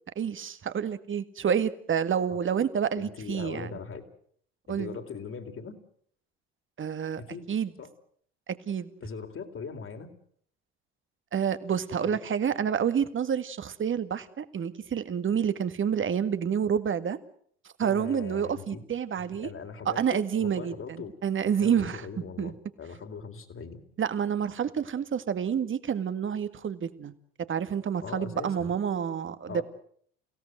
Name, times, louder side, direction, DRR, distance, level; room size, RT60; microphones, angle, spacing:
voice 1, 0.2-3.7 4.7-5.0 6.8-7.2 7.5-7.7 8.7-8.9 11.3-17.2 17.8-19.5 19.9-22.5 24.0-27.1 27.5-29.6, right 8 dB, 40° right, 12 dB, 1.9 m, -28 dB
voice 2, 3.0-4.0 4.7-5.8 7.2-7.5 7.8-7.9 9.0-10.1 12.0-12.2 17.8-18.8 19.2-21.1 21.5-23.8 28.0-28.7 29.5-29.6, left 5 dB, 40° left, 6 dB, 4.0 m, -40 dB
29.5 x 17.0 x 7.9 m, 0.63 s
hypercardioid pair, 60°, 31 cm